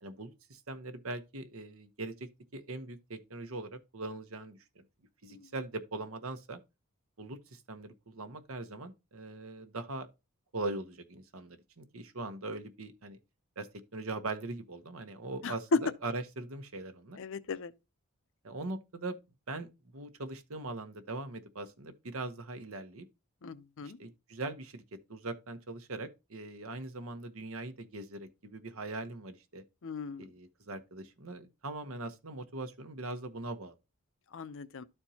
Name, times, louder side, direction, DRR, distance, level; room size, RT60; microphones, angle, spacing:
voice 1, 0.0-4.8 5.2-6.6 7.2-10.1 10.5-13.2 13.6-13.7 13.9-17.2 18.4-19.2 19.5-23.1 23.8-29.6 30.2-33.7, right 2 dB, 70° right, 1.0 m, -41 dB
voice 2, 17.2-17.7 23.4-24.0 29.8-30.2 34.3-34.8, left 6 dB, 65° left, 0.6 m, -41 dB
12.5 x 4.4 x 2.8 m
head